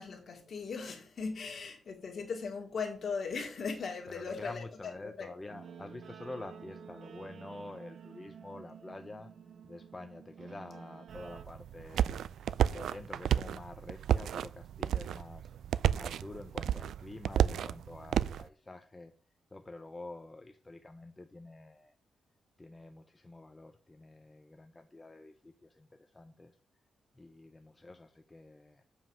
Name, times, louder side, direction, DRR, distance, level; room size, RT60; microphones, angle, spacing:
voice 1, 0.0-4.6 5.2-5.3, left 5 dB, 40° left, 2.4 m, -38 dB
voice 2, 4.1-9.3 9.6-15.5 15.9-19.1 19.5-22.0 22.6-26.6 27.1-28.8, left 2 dB, 15° left, 0.5 m, -48 dB
Guitar, 5.5-11.5, right 6 dB, 55° right, 0.7 m, -50 dB
sound 1, 11.1-18.4, right 10 dB, 80° right, 0.3 m, -31 dB
7.2 x 5.5 x 6.0 m
wide cardioid pair, 165°, 0 cm